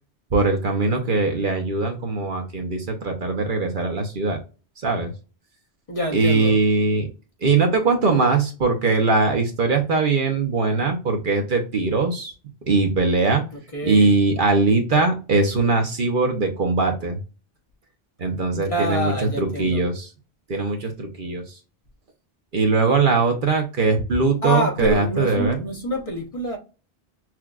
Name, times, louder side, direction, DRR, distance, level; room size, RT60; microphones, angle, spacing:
voice 1, 0.3-4.4 4.8-5.1 6.1-7.1 7.4-12.3 12.7-13.4 13.8-17.2 18.2-20.1 20.5-21.6 22.5-25.6, right 3 dB, 55° right, 0.9 m, -21 dB
voice 2, 5.9-6.6 13.5-14.1 18.5-19.8 24.4-26.6, equal, 35° left, 1.1 m, -26 dB
6.0 x 2.3 x 2.4 m
omnidirectional pair, 1.1 m